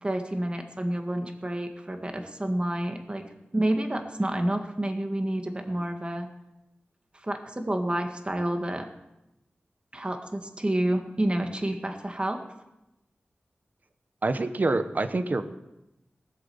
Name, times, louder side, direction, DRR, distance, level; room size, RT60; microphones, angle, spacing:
voice 1, 0.0-3.2 3.5-6.3 7.1-8.9 9.9-12.5, right 1 dB, 25° right, 5 dB, 1.9 m, -29 dB
voice 2, 14.2-15.4, right 2 dB, 50° right, 10 dB, 1.0 m, -26 dB
18.0 x 7.8 x 7.1 m, 0.93 s
wide cardioid pair, 75°, 4 cm